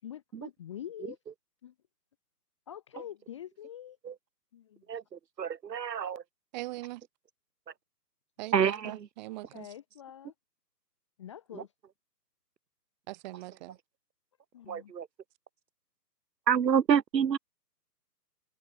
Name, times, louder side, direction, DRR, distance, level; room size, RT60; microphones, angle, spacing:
voice 1, 0.0-1.2 1.6-1.7 2.7-4.0 4.5-4.8 9.5-10.3 11.2-11.7 14.5-14.9, left 10 dB, 20° left, 0.9 m, -45 dB
voice 2, 5.4-6.2 8.5-8.9 14.7-15.1 16.5-17.4, right 8 dB, 90° right, 0.6 m, -27 dB
voice 3, 6.5-7.0 8.4-9.7 13.1-13.8, right 19 dB, 25° right, 5.0 m, -41 dB
figure-of-eight pair, 135°, 49 cm